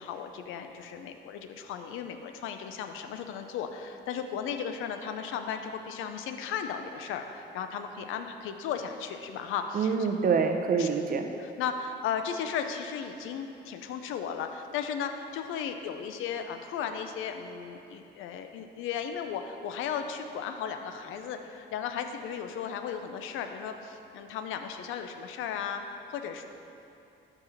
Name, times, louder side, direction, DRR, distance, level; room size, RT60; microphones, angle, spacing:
voice 1, 0.0-10.1 10.8-10.9 11.4-26.5, left 7 dB, 85° left, 7 dB, 0.5 m, -35 dB
voice 2, 9.7-11.3, right 5 dB, 45° right, 5 dB, 0.6 m, -26 dB
4.8 x 4.7 x 5.8 m, 2.7 s
cardioid pair, 90°, 20 cm